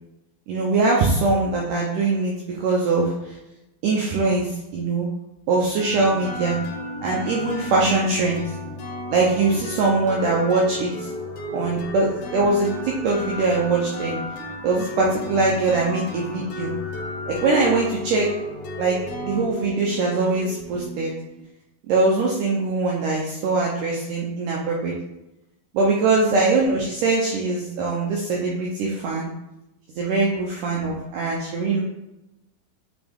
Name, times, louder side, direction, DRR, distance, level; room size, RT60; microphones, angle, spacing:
voice 1, 0.5-3.4 3.8-5.1 5.5-6.6 7.0-8.4 9.1-11.1 11.5-14.2 14.6-16.7 17.3-18.3 18.8-19.0 19.2-21.1 21.9-24.9 25.7-29.3 29.9-31.8, right 3 dB, 80° right, -2 dB, 1.9 m, -22 dB
sound 1, 5.8-21.4, left 2 dB, 70° left, 2.0 m, -33 dB
8.9 x 3.0 x 3.5 m, 0.91 s
omnidirectional pair, 4.4 m